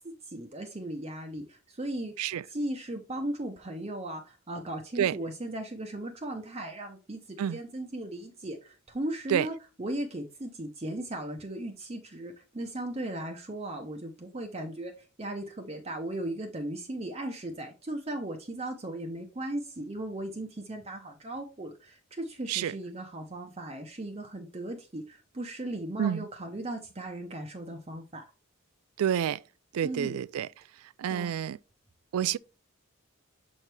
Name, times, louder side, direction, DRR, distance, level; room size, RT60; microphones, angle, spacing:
voice 1, 0.0-2.1 2.5-28.2 29.8-30.2 31.1-31.3, right 1 dB, 25° right, 0.6 m, -37 dB
voice 2, 29.0-29.4 29.7-30.5 31.0-31.6 32.1-32.4, right 9 dB, 80° right, 0.3 m, -28 dB
7.0 x 4.5 x 3.3 m
head